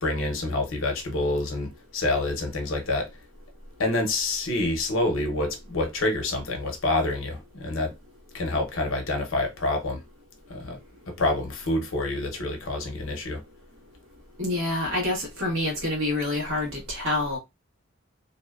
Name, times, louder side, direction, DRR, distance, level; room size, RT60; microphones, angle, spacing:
voice 1, 0.0-3.1 3.8-7.9 8.3-10.0 10.5-10.8 11.1-13.4, left 2 dB, 75° left, 0.7 m, -27 dB
voice 2, 14.4-17.4, left 1 dB, 70° right, 1.1 m, -27 dB
2.6 x 2.1 x 2.3 m
head